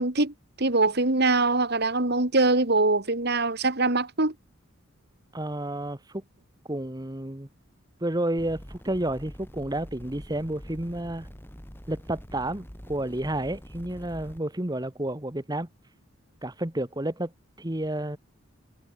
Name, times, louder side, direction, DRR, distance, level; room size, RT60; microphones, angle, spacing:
voice 1, 0.0-4.3, right 2 dB, 50° right, 2.4 m, -23 dB
voice 2, 5.3-6.2 6.7-7.5 8.0-11.3 11.9-15.7 16.4-17.3 17.6-18.2, right 1 dB, 20° right, 1.5 m, -31 dB
sound 1, 8.4-14.4, equal, 10° left, 5.1 m, -45 dB
head